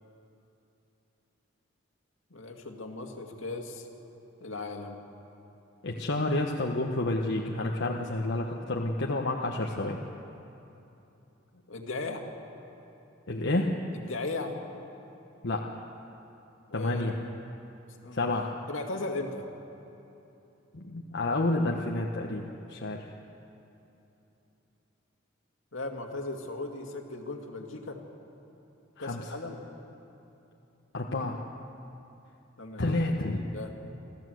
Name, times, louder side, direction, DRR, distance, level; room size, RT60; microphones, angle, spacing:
voice 1, 2.3-3.9 4.4-5.0 11.7-12.2 13.9-14.5 16.7-17.1 18.0-18.3 18.7-19.4 25.7-28.0 29.0-29.6 32.6-33.7, left 2 dB, 80° left, 2 dB, 2.2 m, -37 dB
voice 2, 5.8-10.0 13.3-13.7 15.4-15.7 16.7-17.2 18.1-18.5 20.7-23.0 29.0-29.3 30.9-31.4 32.8-33.5, left 2 dB, 65° left, 0 dB, 1.2 m, -29 dB
28.5 x 13.5 x 7.8 m, 3.0 s
head